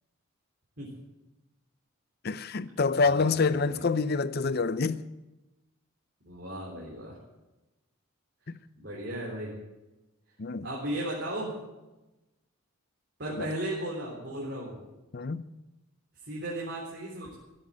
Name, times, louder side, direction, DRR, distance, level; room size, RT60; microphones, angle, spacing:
voice 1, 2.2-5.0 10.4-10.7 13.4-13.5 15.1-15.5, left 4 dB, 45° left, 0.6 m, -27 dB
voice 2, 3.0-3.8 6.2-7.2 8.8-9.6 10.6-11.6 13.2-14.8 16.2-17.3, right 1 dB, 55° right, 3.5 m, -36 dB
16.0 x 8.0 x 8.9 m
head